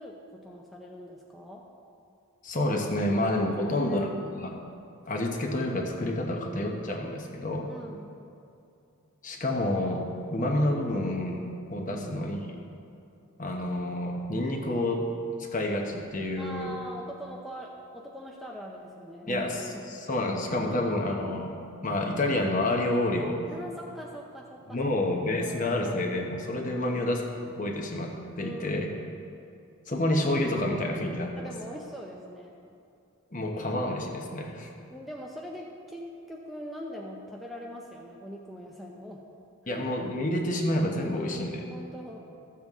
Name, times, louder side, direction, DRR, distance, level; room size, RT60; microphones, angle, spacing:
voice 1, 0.0-1.6 3.6-4.2 7.7-8.1 11.9-12.1 16.4-19.5 19.7-19.8 20.2-20.4 20.6-21.1 23.5-24.9 25.4-25.8 26.7-27.1 28.4-29.1 31.4-32.5 34.9-39.2 39.6-39.8 41.1-42.2, equal, ahead, -2 dB, 0.5 m, -42 dB
voice 2, 2.4-4.6 5.1-7.7 9.2-12.4 13.4-15.1 15.4-16.7 19.3-21.5 21.8-23.4 24.7-28.9 29.9-31.5 33.3-34.7 39.7-41.6, left 1 dB, 35° left, 1 dB, 0.9 m, -29 dB
14.0 x 7.3 x 3.6 m, 2.7 s
head